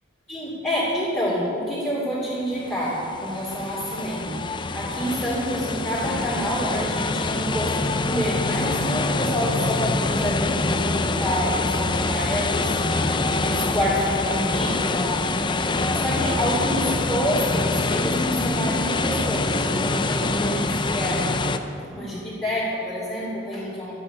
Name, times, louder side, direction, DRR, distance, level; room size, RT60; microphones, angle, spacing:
voice 1, 0.3-4.4 4.7-12.8 13.4-15.2 15.9-21.2 21.9-23.9, equal, 5° left, -11 dB, 3.2 m, -28 dB
sound 1, 2.6-21.6, left 3 dB, 25° left, 0.5 m, -25 dB
sound 2, 6.0-6.6, equal, 65° left, 1.8 m, -38 dB
13.5 x 8.2 x 8.9 m, 2.7 s
head